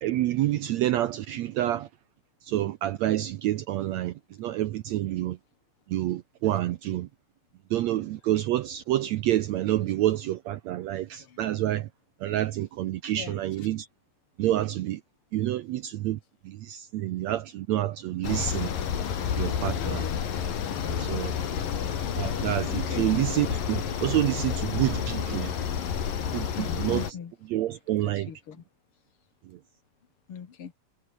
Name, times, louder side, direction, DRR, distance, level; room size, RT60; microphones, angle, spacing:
voice 1, 0.0-1.9 2.4-5.4 5.9-7.1 7.7-11.9 12.2-13.9 14.4-15.0 15.3-16.2 16.4-18.7 19.4-20.1 20.9-21.3 22.2-25.5 26.3-27.0 27.5-28.3, right 14 dB, 70° right, 1.7 m, -28 dB
sound 1, 18.2-27.1, left 8 dB, 85° left, 4.5 m, -30 dB
voice 2, 19.8-20.2 21.4-21.7 22.7-23.0 26.5-27.3 28.0-28.6 30.3-30.7, left 7 dB, 45° left, 2.7 m, -40 dB
omnidirectional pair, 3.8 m